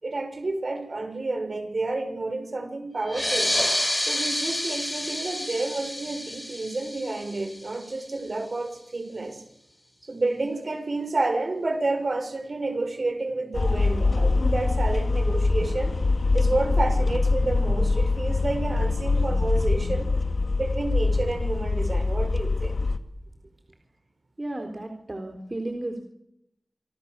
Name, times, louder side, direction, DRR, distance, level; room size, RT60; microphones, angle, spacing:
voice 1, 0.0-3.5 4.0-9.4 10.0-15.9 16.3-20.1 20.6-22.8, right 2 dB, 60° right, 6 dB, 6.2 m, -30 dB
sound 1, 3.0-8.2, left 1 dB, 15° left, 4.3 m, -29 dB
sound 2, 13.5-23.0, left 3 dB, 75° left, 1.9 m, -24 dB
voice 2, 24.4-26.0, right 1 dB, 35° right, 4 dB, 3.8 m, -33 dB
27.5 x 23.5 x 6.9 m, 0.80 s
wide cardioid pair, 55°, 0 cm